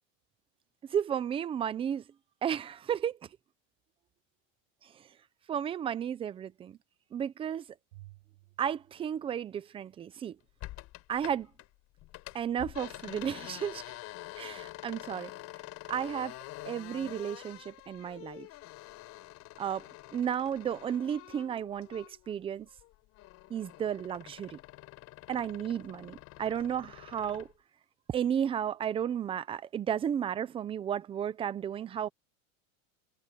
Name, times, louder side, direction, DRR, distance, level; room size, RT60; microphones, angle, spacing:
voice 1, 0.9-2.0 2.4-3.2 5.5-6.8 7.1-7.6 8.6-10.4 11.1-11.5 12.3-13.8 14.4-15.3 15.9-16.3 16.7-18.5 19.6-19.8 20.1-22.7 23.5-24.6 25.3-27.5 28.1-32.1, right 9 dB, 15° right, 0.6 m, -33 dB
Bowed string instrument, 7.9-10.3, right 19 dB, 70° right, 6.1 m, -57 dB
sound 1, 10.6-11.7 12.0-22.3 22.7-27.5, left 18 dB, 40° left, 5.3 m, -47 dB
supercardioid pair, 160°, 41 cm